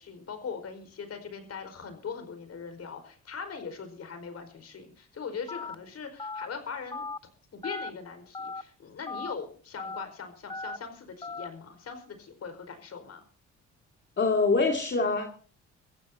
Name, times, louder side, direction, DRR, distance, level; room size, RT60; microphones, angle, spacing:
voice 1, 0.0-13.2, left 5 dB, 55° left, 8 dB, 5.0 m, -41 dB
Telephone, 5.5-5.8 6.2-6.5 6.9-7.2 7.6-7.9 8.3-8.6 9.1-9.3 9.8-10.1 10.5-10.8 11.2-11.5, left 3 dB, 15° left, 0.7 m, -37 dB
voice 2, 14.2-15.4, left 3 dB, 35° left, 2 dB, 2.4 m, -25 dB
25.0 x 15.0 x 2.8 m, 0.41 s
cardioid pair, 90°, 30 cm